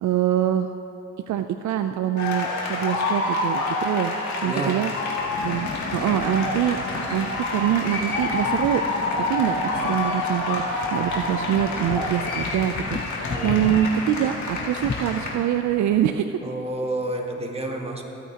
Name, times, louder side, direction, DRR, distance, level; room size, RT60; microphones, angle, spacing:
voice 1, 0.0-0.7 1.3-4.1 4.4-4.9 5.4-6.8 7.1-8.8 9.3-16.3, right 11 dB, 70° right, 8 dB, 0.5 m, -24 dB
sound 1, 2.2-15.3, left 2 dB, 70° left, 2.1 m, -28 dB
voice 2, 4.4-4.9 13.3-13.6 16.4-18.0, right 2 dB, 20° right, 1 dB, 1.5 m, -30 dB
sound 2, 5.2-16.1, left 4 dB, 30° left, 0.8 m, -35 dB
23.5 x 8.4 x 2.9 m, 3.0 s
cardioid pair, 90°, 30 cm